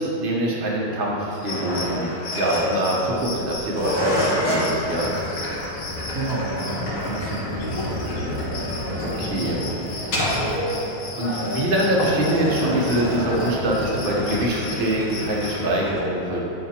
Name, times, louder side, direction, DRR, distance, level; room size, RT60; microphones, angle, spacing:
voice 1, 0.0-5.2 9.0-9.6 11.2-16.4, right 1 dB, 45° right, -3 dB, 0.7 m, -24 dB
sound 1, 1.3-15.6, left 3 dB, 55° left, 0.8 m, -37 dB
sound 2, 1.5-16.0, left 1 dB, 80° left, 2.3 m, -28 dB
voice 2, 6.1-8.2, right 3 dB, 80° right, -4 dB, 0.5 m, -31 dB
10.5 x 5.3 x 2.9 m, 2.9 s
omnidirectional pair, 2.2 m